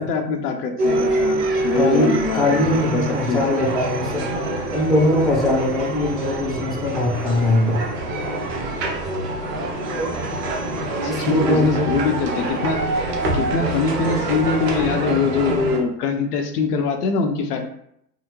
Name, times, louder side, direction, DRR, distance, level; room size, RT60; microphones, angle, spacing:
voice 1, 0.0-2.6 2.9-3.4 11.0-12.8 13.3-17.7, left 5 dB, 70° left, 5 dB, 0.7 m, -23 dB
sound 1, 0.8-15.8, right 2 dB, 75° right, 1.0 m, -25 dB
voice 2, 1.8-4.3 4.7-7.8 11.1-11.9, left 1 dB, ahead, -3 dB, 0.7 m, -21 dB
3.6 x 2.1 x 3.0 m, 0.72 s
hypercardioid pair, 105°, 48 cm